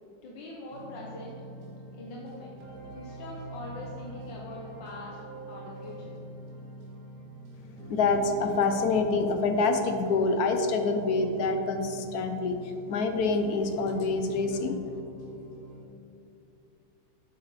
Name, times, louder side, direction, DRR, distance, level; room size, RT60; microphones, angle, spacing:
voice 1, 0.2-1.3 1.9-2.6 2.9-5.2 5.5-6.2, left 1 dB, 85° left, -4 dB, 1.7 m, -42 dB
sound 1, 0.7-15.8, right 1 dB, 55° right, 1.4 m, -44 dB
voice 2, 7.9-12.6 12.9-14.8, left 3 dB, 70° left, 6 dB, 1.1 m, -26 dB
9.6 x 7.7 x 3.2 m, 2.8 s
omnidirectional pair, 1.9 m